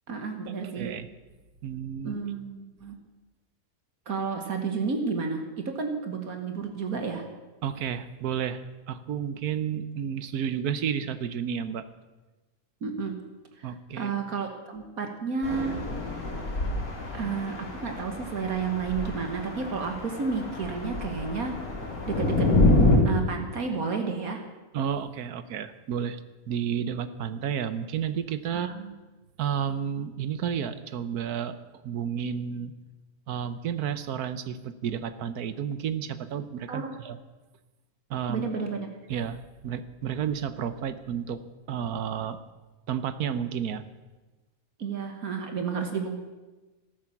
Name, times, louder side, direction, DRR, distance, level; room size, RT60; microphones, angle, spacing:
voice 1, 0.1-0.9 2.0-3.0 4.1-7.3 12.8-13.2 13.6-15.8 17.1-21.6 22.1-22.5 23.0-24.4 28.5-28.9 36.7-37.0 38.3-38.9 44.8-46.1, right 5 dB, 70° right, 5 dB, 1.9 m, -31 dB
voice 2, 0.6-1.1 1.6-2.2 7.6-8.6 8.9-11.8 13.6-14.1 24.7-26.2 26.5-28.7 29.4-31.6 31.8-32.7 33.3-37.2 38.1-38.4 39.1-41.4 41.7-42.4 42.9-43.8, right 8 dB, 90° right, 12 dB, 1.4 m, -31 dB
sound 1, 15.4-23.0, left 2 dB, 65° left, 4.7 m, -27 dB
14.0 x 12.5 x 7.2 m, 1.2 s
omnidirectional pair, 1.6 m